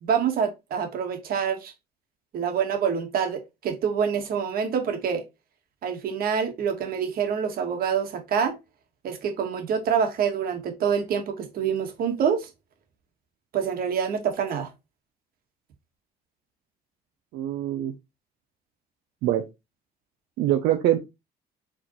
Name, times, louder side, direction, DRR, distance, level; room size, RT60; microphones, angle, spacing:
voice 1, 0.0-1.7 2.3-5.2 5.8-8.6 9.0-12.5 13.5-14.7, right 7 dB, 60° right, 1.5 m, -26 dB
voice 2, 17.3-17.9 19.2-19.5 20.4-21.0, right 12 dB, 85° right, 0.7 m, -23 dB
4.8 x 3.6 x 3.0 m
cardioid pair, 110°, 17 cm